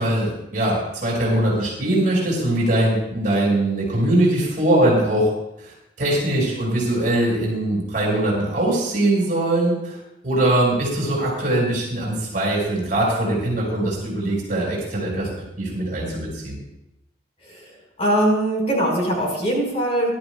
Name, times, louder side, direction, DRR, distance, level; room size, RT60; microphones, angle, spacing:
voice 1, 0.0-5.3 5.6-15.3 15.6-16.6, right 1 dB, 45° right, -4 dB, 4.9 m, -21 dB
voice 2, 18.0-20.2, right 1 dB, 35° left, -1 dB, 4.5 m, -21 dB
21.5 x 12.0 x 2.2 m, 0.86 s
head